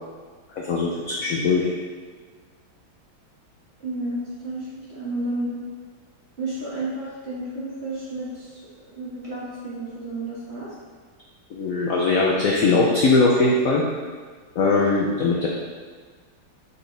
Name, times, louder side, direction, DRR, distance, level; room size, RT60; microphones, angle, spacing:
voice 1, 0.6-1.7 11.5-13.8 14.6-15.5, left 3 dB, 75° left, -2 dB, 0.7 m, -20 dB
voice 2, 3.8-5.6 6.4-8.6 9.0-10.7, right 2 dB, 30° right, -9 dB, 2.0 m, -31 dB
7.2 x 4.3 x 3.3 m, 1.5 s
omnidirectional pair, 2.3 m